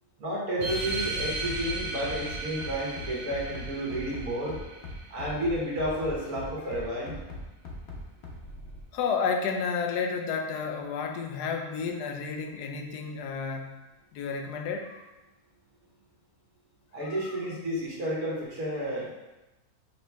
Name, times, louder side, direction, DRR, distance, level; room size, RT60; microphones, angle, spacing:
voice 1, 0.2-4.6 5.1-7.2 16.9-19.1, equal, 65° right, -5 dB, 1.6 m, -31 dB
sound 1, 0.6-5.6, right 2 dB, 85° right, 1.4 m, -36 dB
Bass drum, 1.4-8.8, left 2 dB, 70° left, 1.3 m, -40 dB
voice 2, 8.9-13.7 14.1-15.0 17.1-17.3, left 5 dB, 90° left, 4 dB, 1.2 m, -31 dB
5.2 x 3.0 x 3.4 m, 1.0 s
omnidirectional pair, 1.7 m